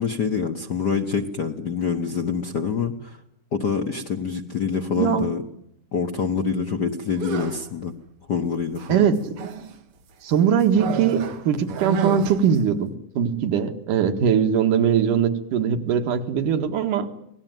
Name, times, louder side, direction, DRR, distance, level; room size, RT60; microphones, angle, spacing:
voice 1, 0.0-3.2 3.5-5.4 5.9-7.9 8.3-9.1, left 6 dB, 55° left, 6 dB, 1.2 m, -26 dB
sound 1, 7.1-7.7 8.8-9.8 10.8-12.6, right 7 dB, 55° right, 2.1 m, -30 dB
voice 2, 8.9-9.4 10.2-17.1, right 8 dB, 85° right, 7 dB, 3.3 m, -21 dB
25.0 x 18.5 x 9.2 m, 0.77 s
omnidirectional pair, 3.5 m